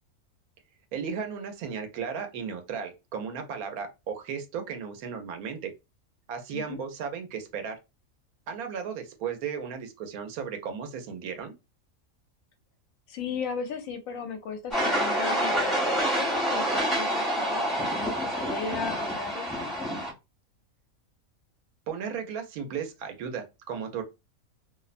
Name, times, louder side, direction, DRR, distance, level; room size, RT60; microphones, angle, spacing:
voice 1, 0.9-5.7 6.3-7.8 8.5-11.5 21.9-24.0, right 6 dB, 85° right, 5 dB, 1.1 m, -35 dB
voice 2, 6.5-6.8 13.1-19.9, left 5 dB, 75° left, 5 dB, 1.0 m, -36 dB
sound 1, 14.7-20.1, equal, ahead, 0.6 m, -27 dB
2.7 x 2.0 x 2.4 m, 0.25 s
omnidirectional pair, 1.5 m